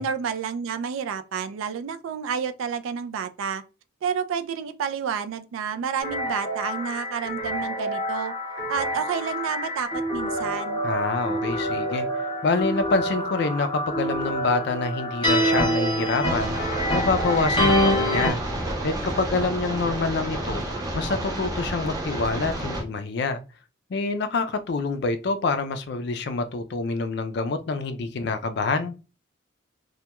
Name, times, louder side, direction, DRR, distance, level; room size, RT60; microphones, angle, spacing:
voice 1, 0.0-3.6 4.0-8.3 8.7-10.8, right 7 dB, 80° right, 0.3 m, -30 dB
sound 1, 6.0-18.3, equal, 20° left, 0.8 m, -26 dB
voice 2, 10.8-18.4 18.8-20.6 20.9-23.4 23.9-28.9, left 3 dB, 55° left, 0.3 m, -26 dB
sound 2, 16.2-22.8, right 1 dB, 15° right, 0.5 m, -30 dB
2.2 x 2.2 x 2.8 m
head